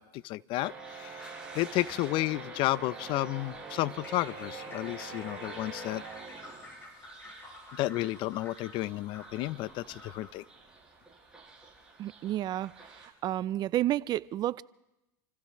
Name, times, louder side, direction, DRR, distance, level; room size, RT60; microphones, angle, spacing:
voice 1, 0.0-6.0 7.7-10.4, left 17 dB, 50° left, 0.5 m, -32 dB
sound 1, 0.6-13.1, right 3 dB, 10° right, 6.9 m, -46 dB
sound 2, 3.9-10.4, left 1 dB, 20° left, 7.5 m, -50 dB
voice 2, 12.0-12.7 13.0-14.6, right 13 dB, 40° right, 0.5 m, -30 dB
29.0 x 15.5 x 3.1 m
supercardioid pair, 110°, 11 cm